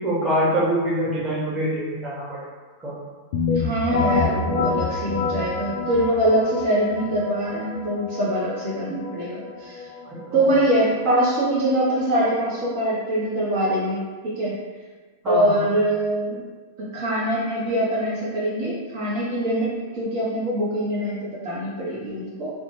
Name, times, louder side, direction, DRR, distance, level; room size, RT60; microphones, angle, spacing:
voice 1, 0.0-2.3 2.8-2.9 10.0-10.2 15.2-15.6, right 1 dB, 20° right, -7 dB, 1.1 m, -24 dB
sound 1, 3.3-12.9, left 4 dB, 65° left, 0.4 m, -28 dB
voice 2, 3.5-9.9 10.3-14.6 15.2-16.4 16.8-22.5, right 1 dB, 60° right, -5 dB, 0.6 m, -23 dB
2.6 x 2.2 x 3.0 m, 1.4 s
hypercardioid pair, 110°, 0 cm